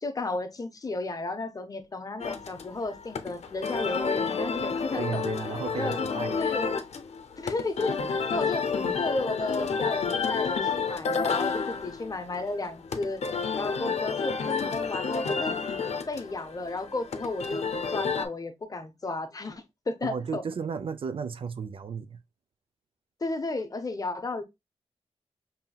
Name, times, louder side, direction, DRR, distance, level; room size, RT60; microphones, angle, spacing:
voice 1, 0.0-5.2 5.8-6.1 6.4-6.7 7.4-8.6 9.0-13.2 13.6-15.6 15.8-20.4 23.2-24.4, left 2 dB, 35° left, 0.7 m, -33 dB
sound 1, 2.2-18.2, left 5 dB, 80° left, 0.6 m, -30 dB
voice 2, 5.0-6.4 20.0-22.2, right 6 dB, 55° right, 0.4 m, -34 dB
5.6 x 2.7 x 2.2 m
wide cardioid pair, 135°, 11 cm